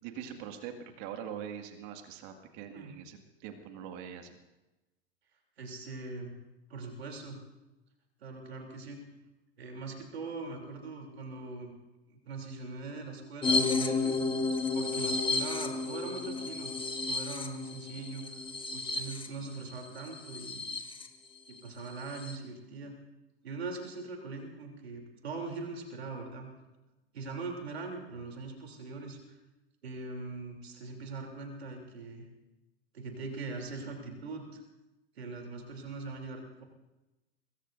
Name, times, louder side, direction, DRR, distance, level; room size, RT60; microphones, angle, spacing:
voice 1, 0.0-4.4, right 8 dB, 50° right, 5 dB, 2.1 m, -43 dB
voice 2, 5.6-6.3 6.7-7.4 8.2-9.0 9.6-11.7 12.1-14.2 14.7-16.7 17.1-18.4 18.7-20.6 21.5-23.0 23.4-26.6 27.1-29.4 29.8-32.2 32.9-34.6 35.1-36.6, right 3 dB, 75° right, 2 dB, 3.3 m, -41 dB
sound 1, 13.4-21.1 21.5-21.6 21.9-22.4, left 3 dB, 15° left, 1.7 m, -32 dB
25.5 x 21.0 x 2.6 m, 1.0 s
figure-of-eight pair, 85°, 31 cm